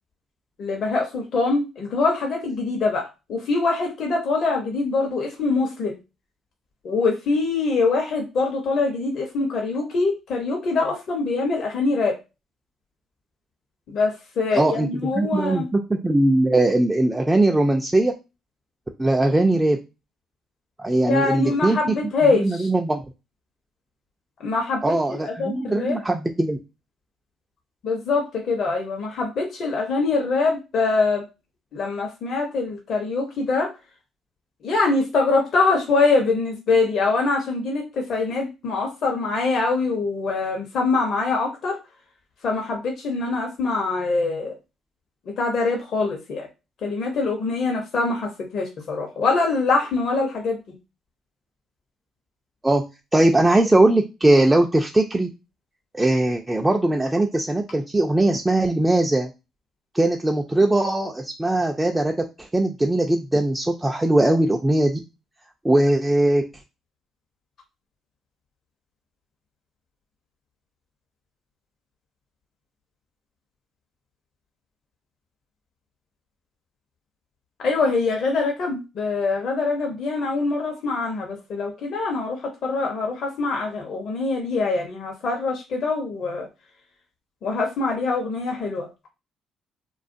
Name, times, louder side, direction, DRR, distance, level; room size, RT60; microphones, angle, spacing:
voice 1, 0.6-6.0 6.8-12.2 13.9-15.7 21.1-22.7 24.4-26.0 27.8-31.2 31.7-33.7 34.6-41.8 42.4-44.5 45.4-46.5 46.8-50.6 77.6-86.5 87.4-88.9, left 3 dB, 60° left, 1 dB, 0.7 m, -24 dB
voice 2, 14.5-14.9 15.2-18.1 19.0-19.8 20.8-21.9 22.3-23.0 24.8-26.6 52.6-52.8 53.1-55.3 55.9-59.3 59.9-65.0 65.6-66.4, right 1 dB, 15° right, 2 dB, 0.4 m, -20 dB
2.4 x 2.3 x 2.6 m, 0.27 s
hypercardioid pair, 55°, 0 cm